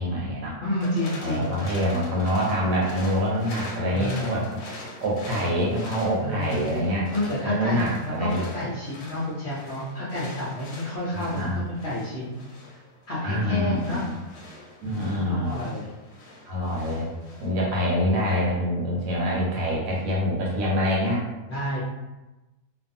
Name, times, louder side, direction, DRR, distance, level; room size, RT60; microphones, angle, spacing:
voice 1, 0.0-0.6 1.2-4.5 5.0-7.1 7.4-8.4 11.1-11.6 13.2-14.2 14.8-15.5 16.5-17.1 17.4-21.2, equal, 65° right, -4 dB, 1.0 m, -25 dB
voice 2, 0.6-1.6 3.9-4.5 6.2-6.7 7.1-12.4 12.7-12.8 13.1-14.1 14.8-15.9 21.5-21.8, left 1 dB, 60° left, -9 dB, 0.7 m, -30 dB
sound 1, 0.8-17.5, left 2 dB, 85° left, 1.1 m, -43 dB
2.5 x 2.4 x 2.6 m, 1.1 s
omnidirectional pair, 1.7 m